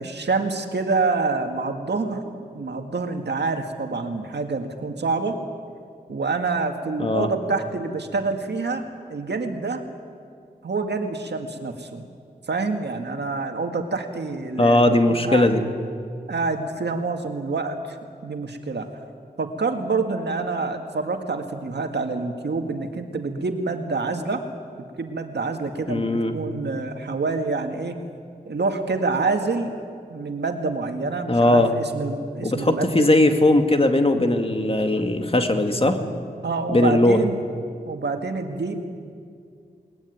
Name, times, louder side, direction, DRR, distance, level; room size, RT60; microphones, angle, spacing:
voice 1, 0.0-2.2 2.6-5.4 6.1-8.8 9.1-9.8 10.6-12.1 12.5-15.5 16.3-18.0 18.2-18.9 19.4-24.4 24.8-28.0 28.5-29.8 30.1-33.2 36.4-37.4 37.9-38.8, right 3 dB, 80° right, 5 dB, 2.0 m, -27 dB
voice 2, 14.6-15.6 25.9-26.3 31.3-31.7 32.4-36.0 36.7-37.2, left 1 dB, 35° left, 5 dB, 2.2 m, -19 dB
21.5 x 20.5 x 9.6 m, 2.2 s
wide cardioid pair, 70°, 17 cm